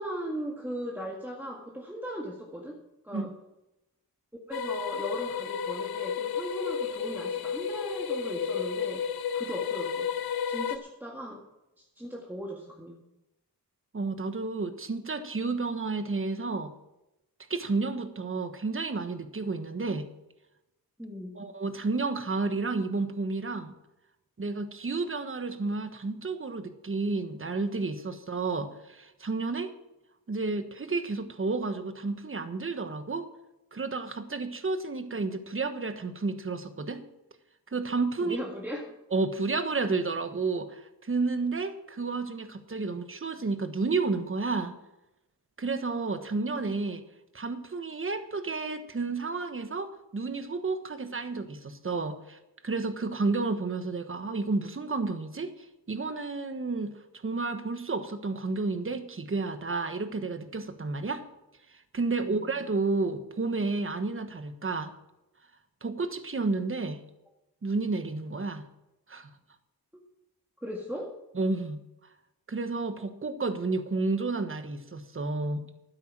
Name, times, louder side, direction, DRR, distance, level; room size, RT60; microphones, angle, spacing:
voice 1, 0.0-3.3 4.5-9.0 9.3-10.1 10.5-11.4 11.8-13.0 21.0-21.4 38.2-39.0 62.2-62.5 69.9-70.0 70.6-71.2, equal, 5° right, -2 dB, 1.9 m, -38 dB
sound 1, 4.5-10.8, left 7 dB, 70° left, 0.8 m, -32 dB
voice 2, 13.9-16.7 17.5-20.1 21.4-23.7 24.4-29.7 30.3-33.3 33.7-37.0 37.7-38.4 39.1-44.7 45.6-47.0 47.3-52.4 52.6-61.2 61.9-64.9 65.8-67.0 67.6-68.6 69.1-69.3 71.3-71.8 72.5-75.7, right 3 dB, 35° right, 9 dB, 1.3 m, -31 dB
12.5 x 9.6 x 6.1 m, 0.92 s
wide cardioid pair, 90°, 39 cm